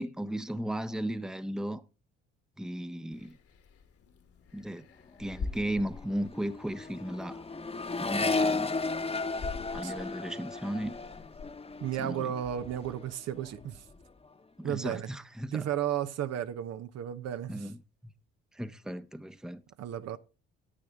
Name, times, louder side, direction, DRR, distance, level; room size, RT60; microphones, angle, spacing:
voice 1, 0.0-1.8 2.6-3.4 4.5-4.9 5.2-7.4 8.0-8.8 9.6-11.0 12.0-12.3 14.6-15.7 17.5-17.8 18.5-19.6, right 1 dB, ahead, 0.8 m, -35 dB
sound 1, 3.1-12.5, left 4 dB, 50° left, 1.5 m, -46 dB
Accelerating revving vroom, 5.1-5.3 5.6-13.1 13.4-14.0, left 3 dB, 20° left, 1.1 m, -34 dB
voice 2, 11.8-13.8 14.6-15.1 15.5-17.7 19.8-20.2, right 10 dB, 55° right, 0.8 m, -34 dB
10.0 x 9.2 x 3.7 m
hypercardioid pair, 55°, 30 cm